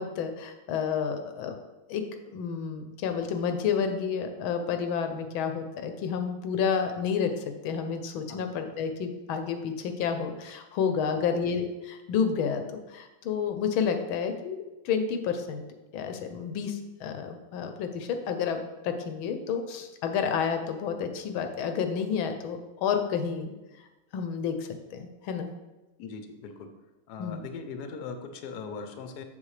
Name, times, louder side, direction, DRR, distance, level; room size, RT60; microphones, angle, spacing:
voice 1, 0.0-1.6 1.9-7.3 7.6-15.6 15.9-23.5 24.1-25.5 27.2-27.4, left 6 dB, 80° left, 7 dB, 1.4 m, -30 dB
voice 2, 26.0-26.7 27.1-29.2, left 5 dB, 65° left, 7 dB, 1.1 m, -40 dB
7.3 x 6.7 x 3.2 m, 1.1 s
omnidirectional pair, 2.3 m